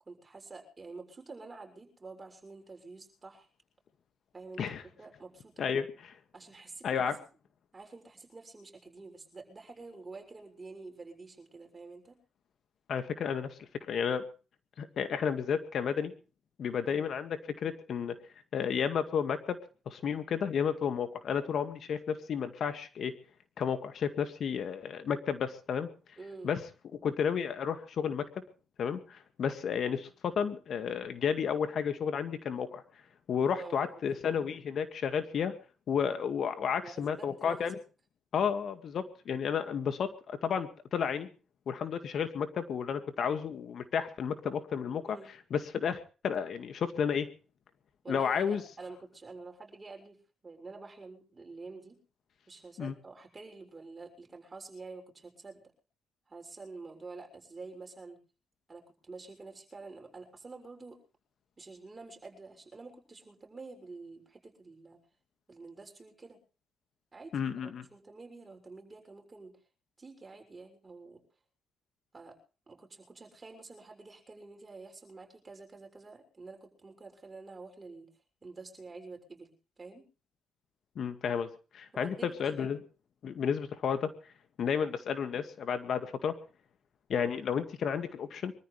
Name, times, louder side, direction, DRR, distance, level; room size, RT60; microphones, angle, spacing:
voice 1, 0.1-3.5 4.3-4.6 5.0-5.7 6.3-7.1 7.7-12.2 16.8-17.0 26.2-26.5 33.6-34.0 36.8-37.6 45.1-45.3 48.0-50.2 50.4-52.0 52.5-55.6 56.3-58.2 58.7-61.0 61.6-65.0 65.5-66.4 67.1-69.6 70.0-71.2 72.1-72.4 72.7-78.1 78.4-80.1 81.9-82.7, right 3 dB, 25° right, 3 dB, 6.6 m, -48 dB
voice 2, 6.8-7.1 12.9-14.2 14.8-16.1 16.6-18.1 18.5-19.6 19.9-23.1 23.6-25.9 26.4-26.6 27.0-28.2 28.8-32.8 33.3-35.5 35.9-37.8 38.3-41.3 41.7-45.2 45.5-47.3 48.1-48.6 52.8-52.9 67.3-67.8 81.0-81.5 81.7-82.8 83.2-84.1 84.6-86.3 87.1-88.5, left 7 dB, 60° left, 9 dB, 2.1 m, -32 dB
25.0 x 14.0 x 3.4 m, 0.36 s
cardioid pair, 90°, 0 cm